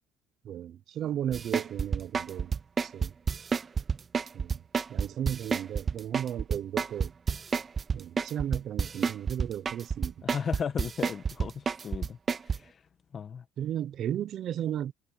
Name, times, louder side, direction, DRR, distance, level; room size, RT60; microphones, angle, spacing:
voice 1, 0.4-2.5 2.8-3.1 4.3-4.6 4.9-7.1 7.9-10.1 13.6-14.9, right 10 dB, 55° right, 0.8 m, -34 dB
sound 1, 1.3-12.6, right 5 dB, 30° right, 0.4 m, -29 dB
voice 2, 10.2-12.2 12.5-12.8 13.1-13.4, left 7 dB, 40° left, 1.7 m, -35 dB
cardioid pair, 105°, 0 cm